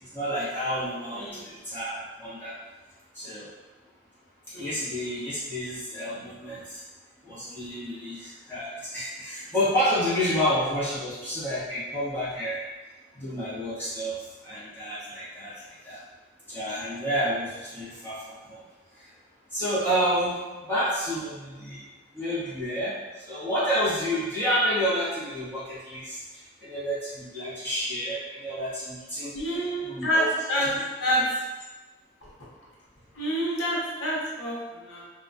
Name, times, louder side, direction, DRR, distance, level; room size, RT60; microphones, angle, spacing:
voice 1, 0.0-2.6 3.1-3.5 4.5-6.8 7.2-12.6 13.1-16.0 16.5-18.6 18.9-19.1 19.5-21.9 22.1-29.3 29.8-30.3 30.6-30.8, equal, 10° left, -14 dB, 0.9 m, -30 dB
voice 2, 1.1-1.5 4.5-4.8 29.3-30.7 31.0-31.3 33.1-35.0, equal, 90° left, -5 dB, 0.7 m, -28 dB
2.2 x 2.2 x 2.5 m, 1.2 s
head